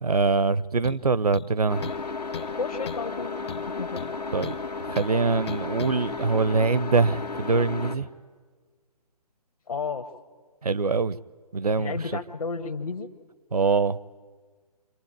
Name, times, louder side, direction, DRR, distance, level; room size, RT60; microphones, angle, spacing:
voice 1, 0.0-1.8 4.3-8.1 10.6-11.2 11.5-12.0 13.5-14.0, right 4 dB, 70° right, 0.8 m, -24 dB
sound 1, 0.8-1.0 1.3-2.1 2.3-2.6 2.9-3.1 3.5-4.6 5.0-5.1 5.5-6.0, left 7 dB, 40° left, 0.8 m, -37 dB
sound 2, 1.7-7.9, left 4 dB, 85° left, 2.0 m, -34 dB
voice 2, 2.6-4.0 9.7-10.1 11.7-13.1, left 4 dB, 65° left, 1.5 m, -32 dB
27.0 x 23.5 x 8.9 m
figure-of-eight pair, 140°, 20 cm